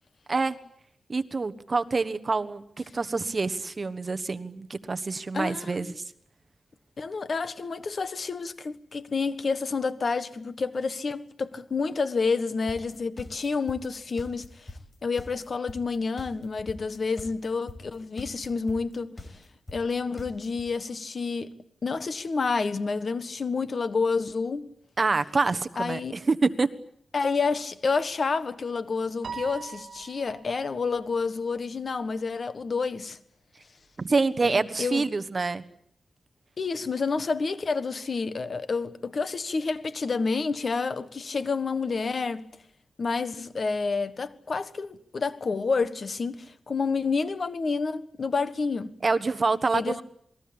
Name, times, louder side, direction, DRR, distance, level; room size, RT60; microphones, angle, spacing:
voice 1, 1.1-6.0 25.0-26.7 34.0-35.6 49.0-50.0, right 3 dB, 40° right, 1.3 m, -26 dB
voice 2, 5.3-5.9 7.0-14.7 15.0-19.3 19.7-21.6 21.8-24.7 25.8-26.2 27.1-33.2 34.4-34.5 34.8-35.0 36.6-42.5 43.0-49.0 49.7-50.0, left 4 dB, 50° left, 1.5 m, -29 dB
sound 1, 12.7-20.6, left 2 dB, 25° left, 5.4 m, -42 dB
Piano, 29.2-30.8, right 6 dB, 65° right, 2.7 m, -40 dB
28.0 x 21.0 x 8.8 m
wide cardioid pair, 115°, 0 cm